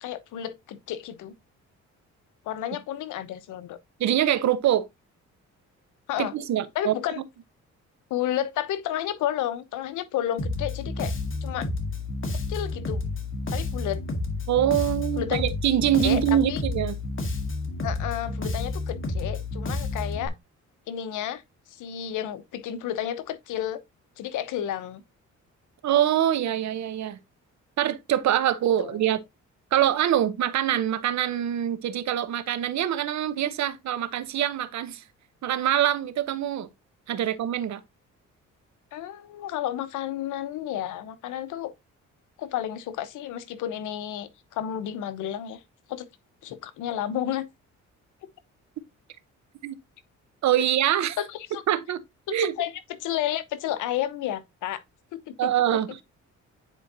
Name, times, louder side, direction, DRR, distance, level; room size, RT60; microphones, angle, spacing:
voice 1, 0.0-1.3 2.5-3.8 6.1-6.3 6.7-7.2 8.1-11.1 11.4-11.7 12.5-13.0 13.5-14.0 15.2-15.4 16.0-16.2 16.5-16.6 17.8-20.3 20.9-21.4 21.7-23.8 24.2-25.0 28.8-29.0 38.9-41.7 42.4-45.6 45.9-46.1 46.4-47.5 51.2-51.6 52.3-52.7 53.0-54.8 55.1-55.5, left 11 dB, 85° left, 0.9 m, -31 dB
voice 2, 4.0-4.9 6.2-6.9 14.5-16.9 25.8-27.2 27.8-29.2 29.7-35.0 35.4-36.7 37.1-37.8 49.6-49.8 50.4-51.2 51.7-52.0 52.3-52.5 55.4-56.0, right 11 dB, 65° right, 0.9 m, -24 dB
Bass guitar, 10.4-20.3, left 2 dB, 40° left, 1.9 m, -30 dB
9.3 x 4.6 x 2.7 m
cardioid pair, 90°, 30 cm